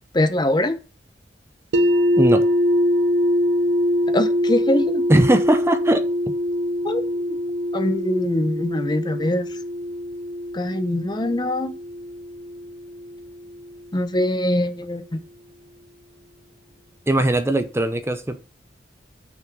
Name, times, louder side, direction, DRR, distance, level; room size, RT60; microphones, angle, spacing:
voice 1, 0.1-0.8 4.1-5.0 6.8-7.0 7.3-7.4 7.7-9.6 10.5-11.7 13.9-15.2, left 1 dB, 25° left, 0.7 m, -23 dB
sound 1, 1.7-13.7, equal, 85° right, 0.6 m, -23 dB
voice 2, 5.1-6.3 17.1-18.4, right 1 dB, 15° right, 0.6 m, -19 dB
6.2 x 5.9 x 3.8 m
head